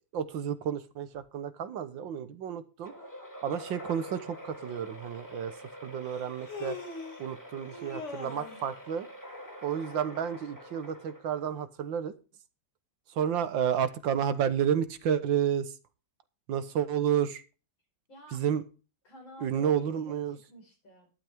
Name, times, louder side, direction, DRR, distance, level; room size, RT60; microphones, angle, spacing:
voice 1, 0.1-2.9 3.4-5.5 5.8-6.8 7.2-9.1 9.6-12.1 13.2-15.7 16.5-17.4 18.3-18.6 19.4-20.4, right 8 dB, 75° right, 12 dB, 1.8 m, -31 dB
sound 1, 2.8-11.6, equal, 10° left, 2.8 m, -46 dB
Human voice, 4.7-4.8 6.1-7.3 7.7-8.7, left 4 dB, 35° left, 2.2 m, -41 dB
voice 2, 18.1-18.4 19.0-21.1, equal, 80° left, 2 dB, 5.9 m, -51 dB
12.0 x 12.0 x 3.5 m, 0.34 s
omnidirectional pair, 2.1 m